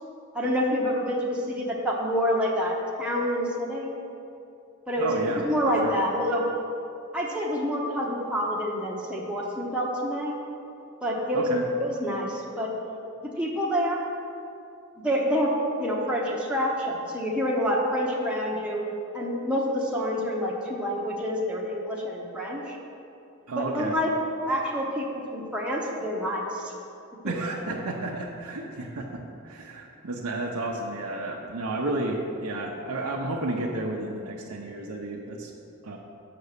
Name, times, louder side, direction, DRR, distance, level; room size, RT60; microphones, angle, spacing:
voice 1, 0.3-3.9 4.9-5.1 5.4-6.4 7.1-10.4 11.0-11.5 11.8-12.7 13.2-14.0 15.0-15.5 15.8-18.8 19.1-22.8 23.6-24.1 24.5-26.7 27.2-27.3, equal, 5° right, -4 dB, 0.8 m, -27 dB
voice 2, 5.0-6.0 11.3-11.6 23.5-24.0 27.2-35.5 35.8-36.0, right 2 dB, 80° right, -1 dB, 0.7 m, -32 dB
6.6 x 6.0 x 6.6 m, 2.7 s
head